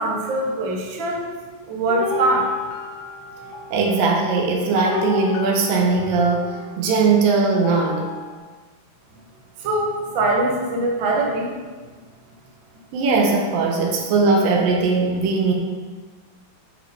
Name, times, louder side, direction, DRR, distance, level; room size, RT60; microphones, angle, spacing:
voice 1, 0.0-1.3 1.7-2.5 9.6-11.5, right 2 dB, 60° right, -2 dB, 1.2 m, -22 dB
sound 1, 1.9-8.4, left 4 dB, 70° left, 2.3 m, -32 dB
voice 2, 3.7-6.5 6.8-8.1 12.9-15.5, right 4 dB, 90° right, 0 dB, 2.8 m, -19 dB
8.4 x 5.1 x 4.4 m, 1.4 s
omnidirectional pair, 3.9 m